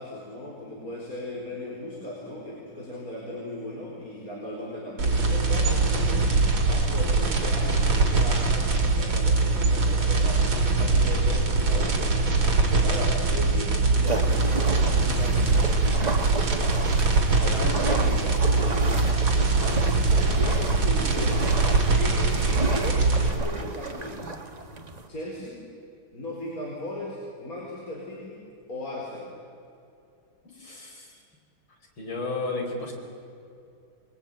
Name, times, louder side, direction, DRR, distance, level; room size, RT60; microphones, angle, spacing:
voice 1, 0.0-6.4 6.6-10.4 10.8-15.8 17.4-19.2 20.4-21.6 21.9-24.3 25.1-25.6 26.1-28.4 28.7-29.4, left 1 dB, 40° left, -4 dB, 4.7 m, -37 dB
sound 1, 5.0-23.3, right 3 dB, 70° right, 3.9 m, -22 dB
sound 2, 14.1-25.1, right 2 dB, 20° right, 1.4 m, -33 dB
voice 2, 17.4-17.8 30.5-31.1 32.0-32.9, left 3 dB, 70° left, 1 dB, 5.4 m, -33 dB
27.5 x 21.0 x 9.0 m, 2.5 s
omnidirectional pair, 2.3 m